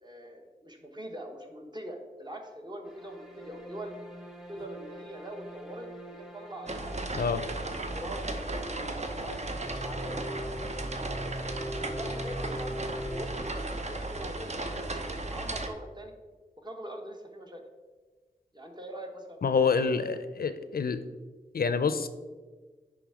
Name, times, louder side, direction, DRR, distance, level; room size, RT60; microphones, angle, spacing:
voice 1, 0.0-3.9 4.5-7.4 7.8-11.3 12.0-12.8 13.0-16.1 16.6-17.6 18.5-19.9, right 1 dB, 30° right, 2 dB, 1.1 m, -43 dB
sound 1, 2.9-14.0, equal, 5° right, 1.0 m, -42 dB
sound 2, 6.7-15.7, right 2 dB, 45° right, 0.7 m, -35 dB
voice 2, 19.4-21.0 21.5-22.1, left 5 dB, 75° left, 12 dB, 0.5 m, -27 dB
10.0 x 3.5 x 4.8 m, 1.4 s
wide cardioid pair, 80°, 15 cm